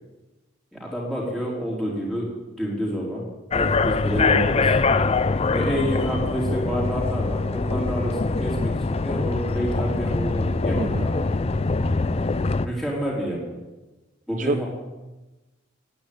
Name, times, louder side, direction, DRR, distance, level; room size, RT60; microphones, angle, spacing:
voice 1, 0.7-3.2 3.5-4.7 5.5-11.1 12.6-13.4 14.3-14.7, equal, ahead, -5 dB, 4.0 m, -28 dB
sound 1, 3.5-12.7, left 3 dB, 30° left, 0.5 m, -23 dB
voice 2, 10.7-11.1 14.4-14.6, right 3 dB, 40° right, 11 dB, 0.4 m, -27 dB
10.0 x 9.6 x 8.6 m, 1.1 s
head